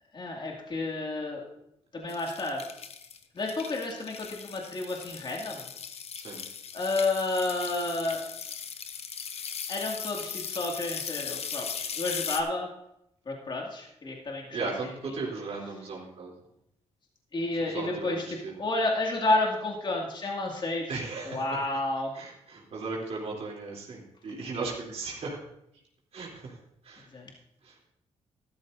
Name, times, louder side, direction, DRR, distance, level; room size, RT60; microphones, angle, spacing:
voice 1, 0.1-1.4 1.9-2.6 3.3-5.6 6.7-8.2 9.7-12.7 13.3-14.9 17.3-22.1 27.1-27.3, left 2 dB, 45° left, 0 dB, 2.3 m, -31 dB
sound 1, 2.1-12.4, left 7 dB, 65° left, 0.9 m, -38 dB
voice 2, 14.5-16.3 17.7-18.5 20.9-21.4 22.1-25.4 26.1-26.5 26.8-27.1 27.6-27.9, right 3 dB, 65° right, -3 dB, 3.3 m, -36 dB
13.0 x 13.0 x 2.7 m, 0.79 s
cardioid pair, 85°, 12 cm